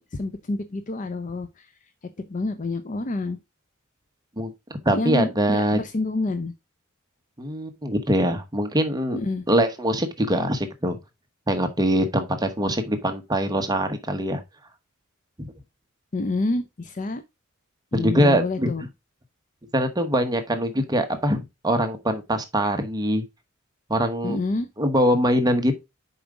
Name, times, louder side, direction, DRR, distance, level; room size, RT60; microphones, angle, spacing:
voice 1, 0.0-1.7 2.2-3.4 4.9-6.5 9.1-9.5 16.1-17.2 17.9-18.8 24.2-24.7, left 2 dB, 40° left, 0.6 m, -28 dB
voice 2, 4.8-5.8 7.4-9.2 9.5-11.0 11.5-14.4 15.4-15.5 17.9-18.7 19.7-23.2 23.9-24.4 24.8-25.8, equal, 20° right, 0.9 m, -23 dB
7.1 x 5.0 x 3.6 m
head